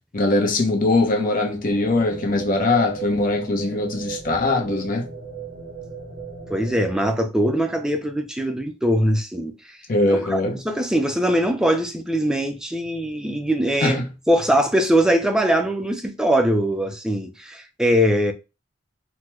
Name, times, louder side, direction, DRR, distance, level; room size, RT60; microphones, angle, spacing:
voice 1, 0.1-5.1 9.9-10.6 13.8-14.1, left 2 dB, 45° left, 0.7 m, -21 dB
sound 1, 1.7-7.1, right 7 dB, 45° right, 1.0 m, -35 dB
voice 2, 6.5-9.8 10.1-14.0 14.3-18.3, equal, 5° right, 0.4 m, -21 dB
3.4 x 2.1 x 2.9 m
head